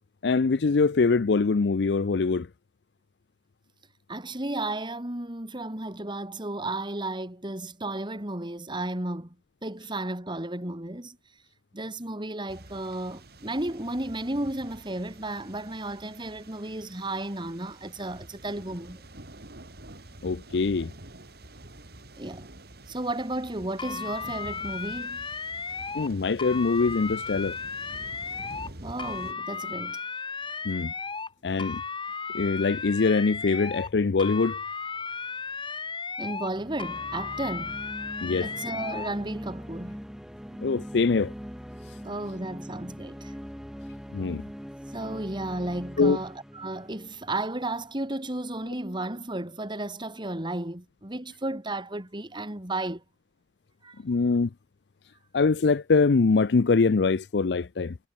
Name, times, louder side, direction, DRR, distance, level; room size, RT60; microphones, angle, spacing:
voice 1, 0.2-2.5 20.2-20.9 25.9-27.6 30.6-30.9 31.4-31.8 32.3-34.6 38.2-38.5 40.6-41.3 44.1-44.4 46.0-46.2 54.0-54.5 55.3-58.0, left 4 dB, 75° left, 0.5 m, -23 dB
voice 2, 4.1-9.4 9.6-11.2 11.7-19.0 22.2-22.5 22.9-25.3 28.8-30.0 36.2-37.8 38.4-40.0 42.0-43.3 44.9-53.0 53.8-54.0, right 2 dB, 25° right, 3.0 m, -33 dB
sound 1, 12.5-29.3, right 1 dB, 65° right, 4.0 m, -47 dB
sound 2, 23.8-26.1 26.4-28.7 29.0-31.3 31.6-33.9 34.2-36.5 36.8-39.1, left 5 dB, 30° left, 3.3 m, -35 dB
sound 3, 36.4-48.0, equal, 5° right, 1.6 m, -42 dB
head